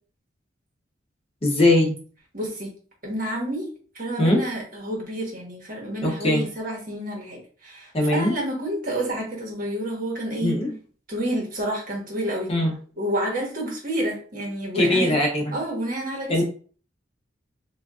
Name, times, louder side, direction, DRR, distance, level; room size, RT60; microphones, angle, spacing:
voice 1, 1.4-1.9 4.2-4.4 6.0-6.5 7.9-8.3 10.4-10.7 12.5-12.7 14.7-15.5 16.3-16.4, left 1 dB, 35° left, 0 dB, 0.8 m, -20 dB
voice 2, 2.3-2.7 3.0-3.7 3.9-10.6 11.1-12.5 13.0-15.1 15.5-16.4, right 1 dB, 50° right, -1 dB, 1.2 m, -29 dB
3.8 x 2.5 x 2.4 m, 0.41 s
head